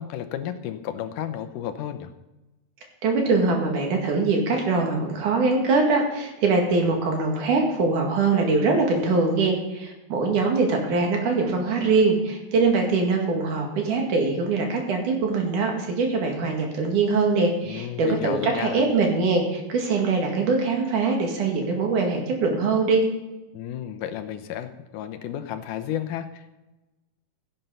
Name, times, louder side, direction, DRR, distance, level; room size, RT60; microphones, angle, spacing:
voice 1, 0.0-2.1 17.7-18.9 23.5-26.6, left 10 dB, 75° left, 9 dB, 2.2 m, -32 dB
voice 2, 3.0-23.0, right 3 dB, 65° right, 2 dB, 3.4 m, -23 dB
16.0 x 7.9 x 5.6 m, 1.0 s
omnidirectional pair, 3.9 m